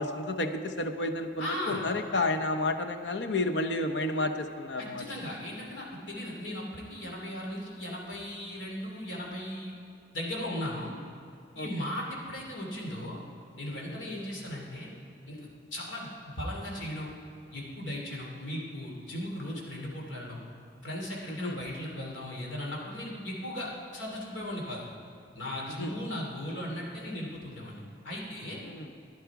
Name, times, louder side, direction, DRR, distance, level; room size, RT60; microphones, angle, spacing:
voice 1, 0.0-5.0 11.6-11.7 13.9-14.0 21.3-21.6 25.8-25.9 28.6-28.9, left 2 dB, 70° left, 6 dB, 0.8 m, -31 dB
voice 2, 1.4-1.8 4.8-9.7 10.1-10.9 11.6-13.2 13.6-14.9 15.3-15.4 15.7-17.1 17.5-20.4 20.8-24.8 25.3-28.6, left 1 dB, 90° left, -2 dB, 2.7 m, -37 dB
12.0 x 10.5 x 4.7 m, 2.5 s
head